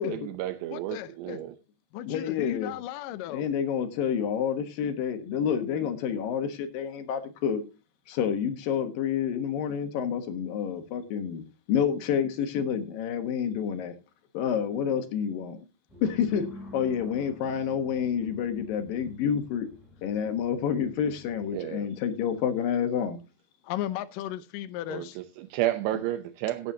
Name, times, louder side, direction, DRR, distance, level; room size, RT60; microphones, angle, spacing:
voice 1, 0.0-1.5 21.5-21.9 24.9-26.7, right 14 dB, 85° right, 2.9 m, -31 dB
voice 2, 0.7-1.4 1.9-3.5 23.6-25.2, left 13 dB, 85° left, 1.9 m, -35 dB
voice 3, 2.1-2.8 3.3-7.6 8.1-14.0 14.3-15.6 16.0-16.5 16.7-19.7 20.0-23.2, left 8 dB, 65° left, 2.8 m, -29 dB
sound 1, 15.9-21.6, left 2 dB, ahead, 7.1 m, -48 dB
17.5 x 9.0 x 2.8 m
omnidirectional pair, 4.8 m